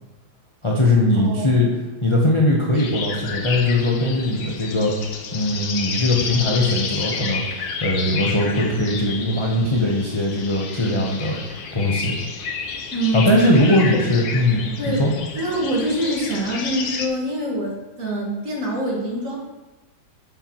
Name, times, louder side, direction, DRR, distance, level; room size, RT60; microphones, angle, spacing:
voice 1, 0.6-1.7 2.0-4.9 5.3-7.4 7.8-11.4 11.7-12.2 13.1-15.1, left 1 dB, 25° left, -3 dB, 0.6 m, -20 dB
voice 2, 1.2-1.5 12.9-13.3 13.6-13.8 14.8-15.0 15.4-19.4, right 1 dB, 45° right, -3 dB, 2.0 m, -25 dB
sound 1, 2.7-17.1, left 5 dB, 90° left, 1.5 m, -30 dB
9.0 x 6.7 x 3.0 m, 1.2 s
omnidirectional pair, 2.0 m